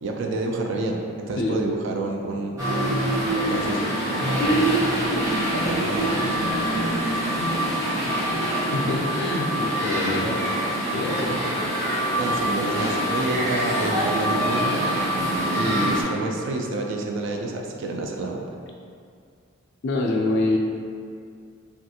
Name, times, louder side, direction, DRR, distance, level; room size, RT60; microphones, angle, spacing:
voice 1, 0.0-3.0 3.5-3.8 4.1-4.7 5.5-6.4 12.2-14.8 15.5-18.5, right 2 dB, 60° right, 1 dB, 0.3 m, -28 dB
sound 1, 2.6-16.0, right 1 dB, 15° right, 0.7 m, -24 dB
voice 2, 8.2-10.3 10.9-11.4 19.8-20.6, left 2 dB, 55° left, -1 dB, 0.3 m, -26 dB
3.3 x 2.4 x 2.7 m, 2.3 s
head